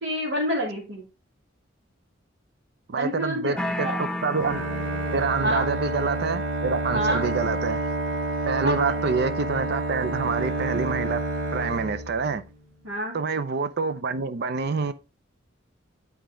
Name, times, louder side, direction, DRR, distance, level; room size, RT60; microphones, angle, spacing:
voice 1, 0.0-1.0 3.0-4.0 5.4-5.6 6.9-7.2 8.6-8.9 12.8-13.2, equal, 70° right, 2.1 m, -28 dB
voice 2, 2.9-4.6 5.1-7.8 8.5-11.2 11.5-12.4 13.1-14.9, right 4 dB, 55° right, 0.5 m, -27 dB
sound 1, 3.6-5.5, left 1 dB, 5° left, 0.4 m, -31 dB
Bowed string instrument, 4.3-12.6, right 2 dB, 90° right, 2.2 m, -29 dB
8.2 x 4.6 x 3.7 m
head